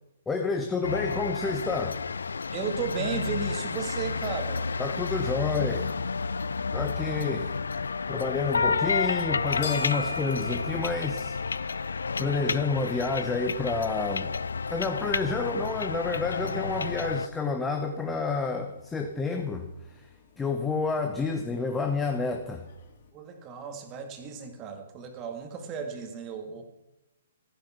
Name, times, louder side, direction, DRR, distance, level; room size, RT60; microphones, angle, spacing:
voice 1, 0.3-2.0 4.8-6.0 6.7-7.5 8.1-11.9 12.2-14.3 14.7-20.1 20.4-22.6, left 4 dB, 10° left, 4 dB, 1.0 m, -29 dB
sound 1, 0.8-17.3, left 5 dB, 65° left, 0.4 m, -31 dB
voice 2, 2.5-4.7 23.1-26.6, right 6 dB, 25° right, 6 dB, 2.1 m, -34 dB
sound 2, 9.5-23.1, left 3 dB, 50° left, 2.6 m, -47 dB
15.0 x 10.0 x 6.0 m, 0.97 s
figure-of-eight pair, 120°, 0 cm